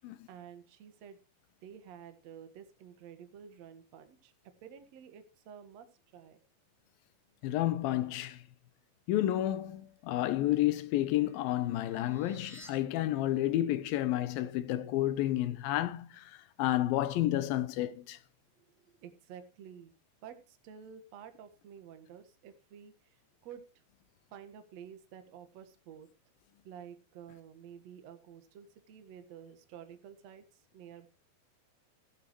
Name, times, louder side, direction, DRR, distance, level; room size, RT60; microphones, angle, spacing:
voice 1, 0.3-1.2 1.6-4.3 4.6-5.9 6.1-6.4 18.6-18.7 19.0-19.9 20.2-23.2 23.4-23.8 24.3-26.1 26.6-30.4 30.7-31.1, right 8 dB, 55° right, 2.1 m, -51 dB
voice 2, 7.4-8.4 9.1-16.3 16.6-18.2, left 14 dB, 75° left, 2.3 m, -30 dB
sound 1, 10.5-12.7, equal, ahead, 2.3 m, -57 dB
14.5 x 12.0 x 3.1 m
omnidirectional pair, 4.8 m